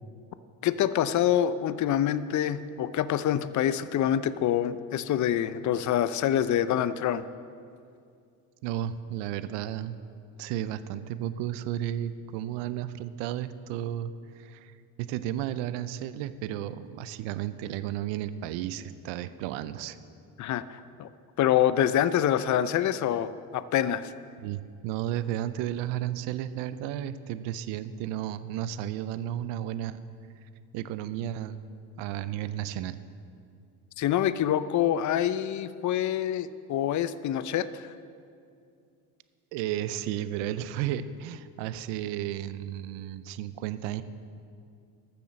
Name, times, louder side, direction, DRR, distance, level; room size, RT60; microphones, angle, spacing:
voice 1, 0.6-7.2 20.4-21.1 21.4-24.1 34.0-37.9, left 10 dB, 45° left, 15 dB, 0.5 m, -26 dB
voice 2, 8.6-10.0 10.4-14.7 15.0-20.0 24.4-30.0 30.7-31.6 32.0-33.0 39.5-44.0, right 11 dB, 85° right, 13 dB, 0.6 m, -33 dB
13.5 x 6.9 x 6.3 m, 2.4 s
supercardioid pair, 80°, 42 cm